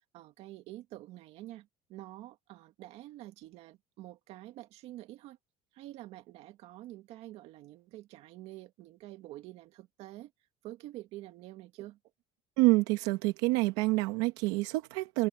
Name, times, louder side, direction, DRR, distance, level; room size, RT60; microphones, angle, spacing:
voice 1, 0.1-5.4 5.7-10.3 10.6-12.0, right 16 dB, 60° right, 2.2 m, -47 dB
voice 2, 12.6-15.3, right 22 dB, 90° right, 1.6 m, -27 dB
cardioid pair, 150°, 12 cm